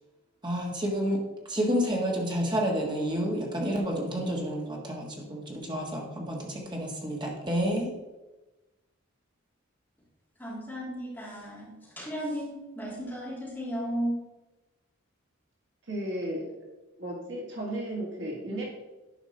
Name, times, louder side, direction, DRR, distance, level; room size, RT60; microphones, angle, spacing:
voice 1, 0.4-1.2 1.5-7.9, equal, 20° right, -1 dB, 1.5 m, -29 dB
voice 2, 10.4-14.1, equal, 10° left, -8 dB, 3.2 m, -35 dB
voice 3, 15.9-16.5 17.0-18.6, right 1 dB, 55° right, -2 dB, 2.0 m, -34 dB
10.5 x 5.1 x 4.3 m, 1.1 s
head